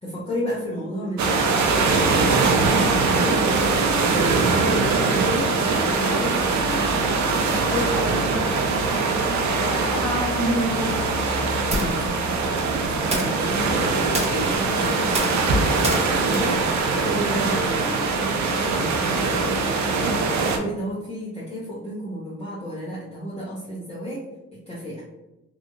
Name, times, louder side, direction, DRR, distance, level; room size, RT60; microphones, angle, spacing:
voice 1, 0.0-2.0 2.5-3.5 4.0-6.8 11.8-16.6 16.9-20.2 20.5-24.3 24.5-25.0, equal, 20° left, -7 dB, 0.8 m, -32 dB
sound 1, 1.2-20.6, right 4 dB, 70° right, 0.6 m, -22 dB
voice 2, 7.5-11.1, equal, 5° left, -5 dB, 1.2 m, -29 dB
sound 2, 11.7-17.8, right 1 dB, 20° right, 0.8 m, -32 dB
3.0 x 2.4 x 2.7 m, 0.98 s
cardioid pair, 90°, 30 cm